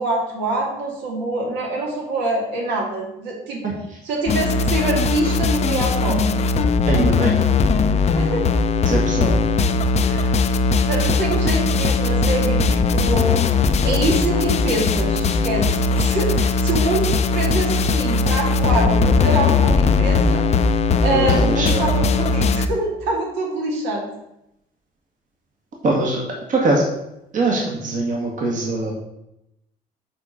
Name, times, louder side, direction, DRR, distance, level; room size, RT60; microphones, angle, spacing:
voice 1, 0.0-3.6 4.0-6.3 8.1-8.6 10.0-10.4 10.9-13.5 13.8-15.7 15.9-20.7 21.0-24.1, right 2 dB, 80° right, -2 dB, 2.3 m, -25 dB
sound 1, 4.3-22.7, left 4 dB, 40° left, 0.5 m, -19 dB
voice 2, 6.9-7.4 8.9-9.4 21.1-21.8 25.8-26.8 27.3-28.9, right 2 dB, 50° right, -2 dB, 1.7 m, -22 dB
7.7 x 4.3 x 5.1 m, 0.85 s
cardioid pair, 110°, 17 cm